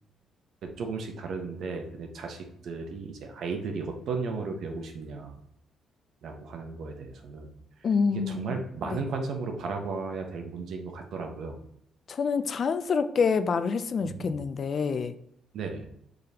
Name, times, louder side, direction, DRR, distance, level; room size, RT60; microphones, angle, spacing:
voice 1, 0.8-5.3 6.2-7.5 8.3-11.6 14.0-14.3 15.5-15.9, right 4 dB, 70° right, 0.9 m, -35 dB
voice 2, 7.8-9.0 12.1-15.1, left 5 dB, 50° left, 0.3 m, -27 dB
5.0 x 3.8 x 2.8 m
cardioid pair, 90°, 0 cm